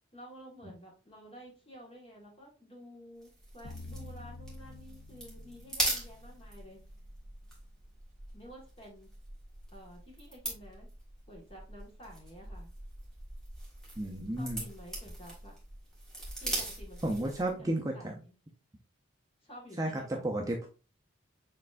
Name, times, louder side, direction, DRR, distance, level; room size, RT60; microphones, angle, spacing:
voice 1, 0.1-6.8 8.3-9.1 9.7-10.9 11.3-12.7 14.4-15.5 16.3-18.3 19.4-20.3, equal, 30° left, -1 dB, 1.5 m, -51 dB
sound 1, 3.2-17.6, right 1 dB, 5° left, 1.5 m, -41 dB
sound 2, 3.6-6.8, left 3 dB, 85° left, 0.4 m, -49 dB
voice 2, 14.0-14.6 17.0-18.2 19.8-20.7, right 1 dB, 15° right, 1 dB, 0.5 m, -33 dB
6.5 x 3.3 x 2.5 m, 0.34 s
head